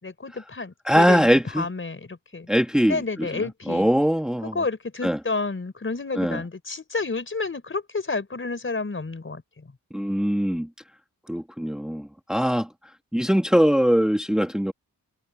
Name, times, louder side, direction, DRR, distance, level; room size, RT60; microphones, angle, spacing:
voice 1, 0.0-1.3 1.6-2.5 2.9-3.9 4.4-9.7, left 3 dB, 35° left, 4.8 m, -30 dB
voice 2, 0.8-1.7 2.5-4.6 5.0-5.2 6.1-6.4 9.9-10.7 11.3-12.7 13.1-14.7, equal, ahead, 1.6 m, -22 dB
wide cardioid pair, 125°, 34 cm